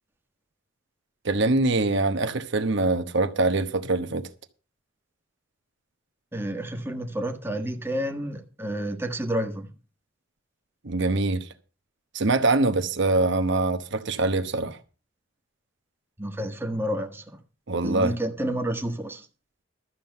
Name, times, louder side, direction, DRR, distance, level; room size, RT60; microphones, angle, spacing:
voice 1, 1.2-4.3 10.8-11.5 12.1-14.8 17.7-18.2, right 2 dB, 65° right, 1.0 m, -24 dB
voice 2, 6.3-9.7 16.2-17.2 17.8-19.2, right 1 dB, 10° right, 1.4 m, -30 dB
12.5 x 7.5 x 6.7 m
head